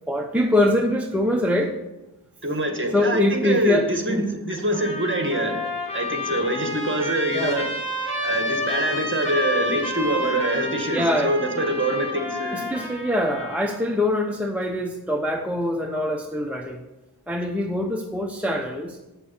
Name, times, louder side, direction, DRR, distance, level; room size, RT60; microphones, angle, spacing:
voice 1, 0.1-1.8 2.9-4.3 7.3-7.6 10.9-11.3 12.5-16.8 17.3-19.0, left 1 dB, 5° right, 2 dB, 0.8 m, -24 dB
voice 2, 2.4-5.7 5.9-7.7 8.2-12.7, right 1 dB, 30° right, 4 dB, 1.9 m, -25 dB
Trumpet, 4.7-13.9, left 2 dB, 15° left, 4.2 m, -30 dB
8.3 x 6.9 x 7.0 m, 1.0 s
wide cardioid pair, 50°, 39 cm